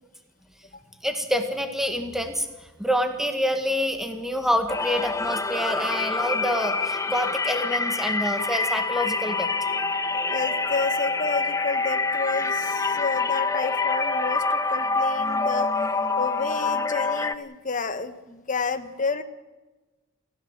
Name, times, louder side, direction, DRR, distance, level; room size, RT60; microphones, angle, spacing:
voice 1, 1.0-2.5 2.8-9.5, equal, ahead, 6 dB, 2.0 m, -27 dB
sound 1, 4.7-17.4, left 3 dB, 15° left, 0.9 m, -26 dB
voice 2, 10.3-15.7 16.0-19.2, left 4 dB, 40° left, 9 dB, 1.6 m, -30 dB
28.0 x 15.5 x 7.5 m, 1.2 s
head